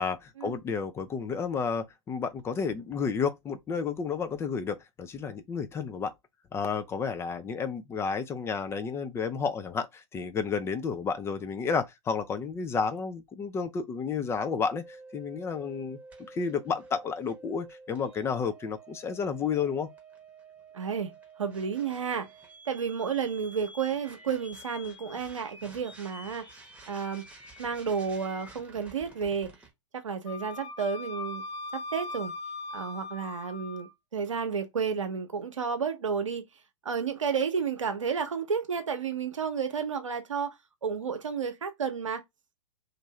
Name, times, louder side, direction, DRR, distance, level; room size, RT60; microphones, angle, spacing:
voice 1, 0.0-6.1 6.5-16.0 16.3-19.9, left 5 dB, 15° left, 0.4 m, -31 dB
sound 1, 14.6-29.7, right 2 dB, 10° right, 0.9 m, -50 dB
voice 2, 20.7-21.1 21.4-22.3 22.7-26.5 26.9-27.2 27.6-29.5 29.9-31.4 31.7-32.3 32.7-36.4 36.8-40.6 40.8-42.2, right 6 dB, 80° right, 0.8 m, -31 dB
Wind instrument woodwind instrument, 30.3-33.9, left 3 dB, 60° left, 0.9 m, -39 dB
2.6 x 2.5 x 3.1 m
figure-of-eight pair, 105°, 16 cm